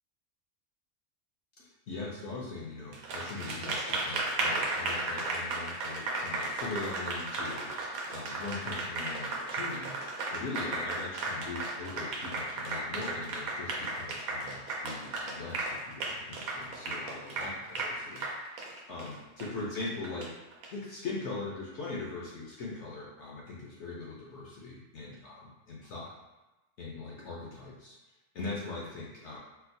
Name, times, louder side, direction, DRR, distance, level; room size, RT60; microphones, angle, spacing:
voice 1, 1.6-9.9 10.3-20.3 20.7-26.1 26.8-28.0 28.3-29.4, left 3 dB, 65° left, -5 dB, 0.8 m, -41 dB
Applause, 2.9-20.7, right 2 dB, 85° right, 1.1 m, -35 dB
4.3 x 2.0 x 2.6 m, 1.1 s
omnidirectional pair, 1.5 m